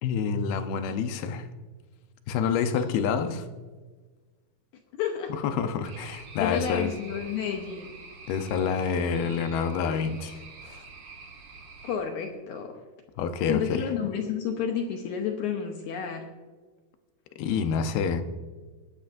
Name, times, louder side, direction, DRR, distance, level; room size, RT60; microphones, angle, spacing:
voice 1, 0.0-1.5 2.3-3.5 5.3-6.9 8.3-10.8 13.2-13.9 17.4-18.2, left 6 dB, 90° left, 8 dB, 2.7 m, -28 dB
voice 2, 4.9-5.3 6.4-7.9 11.8-12.8 13.5-16.3, left 7 dB, 75° left, 3 dB, 1.9 m, -31 dB
sound 1, 5.8-12.0, right 4 dB, 80° right, 1.0 m, -46 dB
21.0 x 10.0 x 2.6 m, 1.4 s
omnidirectional pair, 4.3 m